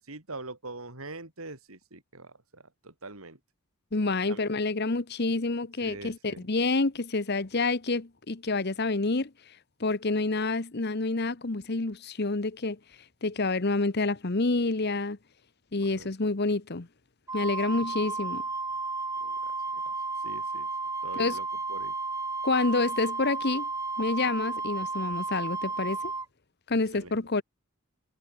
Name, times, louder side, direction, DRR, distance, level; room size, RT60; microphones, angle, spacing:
voice 1, 0.0-3.4 4.3-4.4 5.8-6.5 15.9-16.1 17.7-17.8 19.2-19.9 20.2-20.7 21.0-21.9 26.7-27.4, right 2 dB, 75° right, 4.5 m, -44 dB
voice 2, 3.9-9.3 9.8-12.8 13.2-15.2 15.7-16.9 17.3-18.4 21.1-21.4 22.4-23.7 24.0-26.1 26.7-27.4, left 3 dB, 50° left, 1.1 m, -28 dB
Wind instrument woodwind instrument, 17.3-26.3, right 3 dB, 15° right, 1.7 m, -33 dB
head